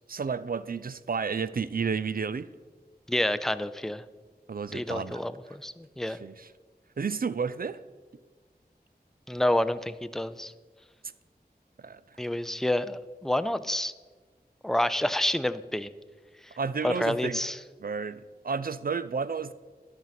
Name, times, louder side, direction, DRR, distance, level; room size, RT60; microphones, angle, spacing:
voice 1, 0.1-2.5 4.5-5.6 6.1-6.5 7.0-7.8 11.8-12.0 16.6-17.4 17.8-19.5, right 5 dB, 60° right, 15 dB, 0.4 m, -32 dB
voice 2, 3.1-4.0 4.7-6.2 9.3-10.5 12.2-13.9 14.6-15.9 16.8-17.6, left 1 dB, 5° left, 13 dB, 0.4 m, -28 dB
12.0 x 5.5 x 5.8 m, 1.4 s
wide cardioid pair, 50°, 17 cm